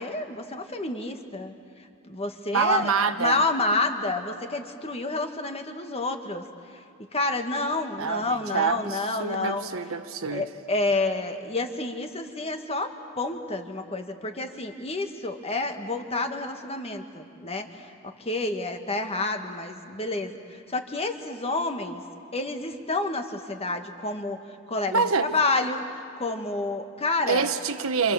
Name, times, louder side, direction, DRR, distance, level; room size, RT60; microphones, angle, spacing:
voice 1, 0.0-1.5 2.1-6.4 7.1-9.6 10.3-12.9 13.2-20.4 20.7-22.0 22.3-24.4 24.7-25.8 26.2-27.5, left 2 dB, 30° left, 5 dB, 1.6 m, -29 dB
voice 2, 2.5-3.4 8.0-10.4 24.9-25.3 27.3-28.1, right 5 dB, 75° right, 9 dB, 1.2 m, -26 dB
28.0 x 27.5 x 7.3 m, 2.3 s
head